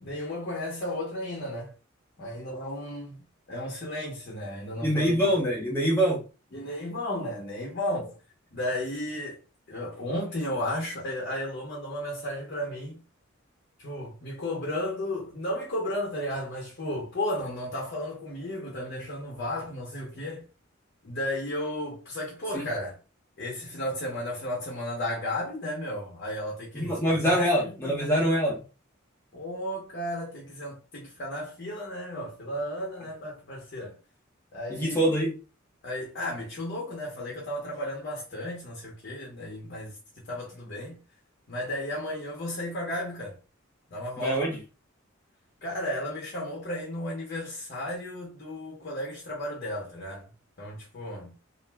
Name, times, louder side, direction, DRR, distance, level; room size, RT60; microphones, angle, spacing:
voice 1, 0.0-1.7 2.2-3.2 3.5-5.2 6.5-8.2 8.5-9.4 9.7-13.0 13.8-20.4 21.0-23.0 23.4-28.2 29.3-34.0 34.5-35.1 35.8-41.0 41.5-43.4 43.9-44.4 45.6-50.2 50.6-51.3, left 1 dB, 50° left, 0.7 m, -34 dB
voice 2, 4.8-6.2 22.5-22.7 26.8-28.6 34.8-35.3 44.2-44.6, equal, 10° left, 0.7 m, -24 dB
2.5 x 2.1 x 3.2 m
head